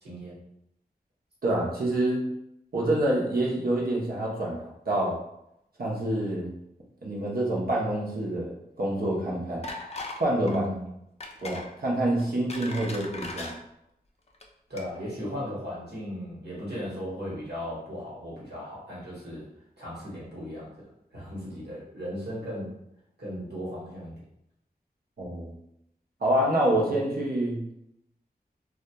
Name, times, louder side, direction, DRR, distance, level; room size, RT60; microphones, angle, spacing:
voice 1, 0.0-0.4 10.4-10.9 14.7-19.5 19.8-22.7 23.2-24.1, equal, 90° right, -7 dB, 1.1 m, -36 dB
voice 2, 1.4-2.2 2.7-5.2 5.8-6.5 7.0-9.7 10.2-10.6 11.4-13.5 25.2-25.5 26.2-27.6, right 1 dB, 65° right, -3 dB, 0.7 m, -27 dB
sound 1, 9.6-10.2 10.5-10.7 11.2-11.7 12.2-13.5 14.3-14.4 14.8-14.9, left 2 dB, 40° left, 0.4 m, -38 dB
2.8 x 2.3 x 2.2 m, 0.80 s
wide cardioid pair, 65°, 16 cm